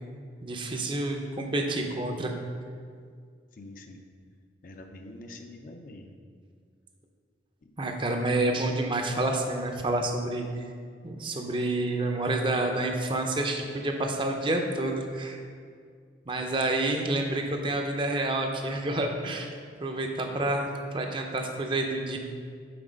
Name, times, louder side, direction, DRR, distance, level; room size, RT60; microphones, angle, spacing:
voice 1, 0.4-2.3 7.8-10.6 11.0-15.4 16.3-19.5 19.8-22.2, right 2 dB, 25° right, 3 dB, 0.5 m, -29 dB
voice 2, 3.5-4.0 4.6-6.1, left 2 dB, 45° left, 4 dB, 0.5 m, -45 dB
6.0 x 4.1 x 5.1 m, 2.1 s
head